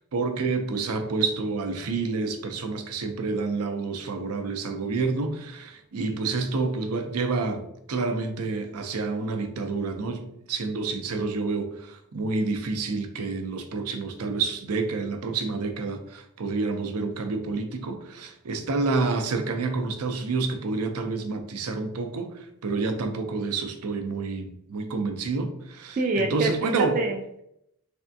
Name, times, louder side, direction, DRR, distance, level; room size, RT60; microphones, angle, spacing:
voice 1, 0.0-27.0, right 3 dB, 85° right, 7 dB, 0.5 m, -29 dB
voice 2, 26.0-27.4, right 2 dB, 35° right, 2 dB, 0.3 m, -26 dB
3.5 x 3.3 x 2.6 m, 0.77 s
head